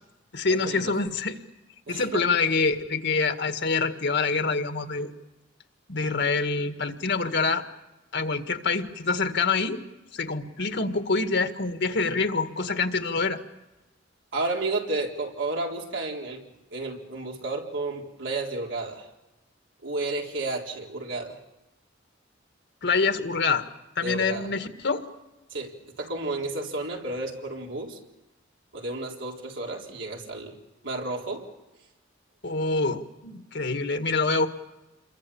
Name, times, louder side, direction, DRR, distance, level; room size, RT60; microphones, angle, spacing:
voice 1, 0.3-1.4 1.9-5.1 5.9-7.6 8.1-9.8 10.1-13.4 22.8-23.6 24.0-25.0 32.4-34.5, left 4 dB, 65° left, 7 dB, 1.8 m, -26 dB
voice 2, 1.9-2.3 14.3-16.4 16.7-19.1 19.8-21.4 24.0-24.5 25.5-28.0 28.7-30.6 30.8-31.5, right 2 dB, 75° right, 0 dB, 3.9 m, -32 dB
28.5 x 23.0 x 7.2 m, 1.0 s
head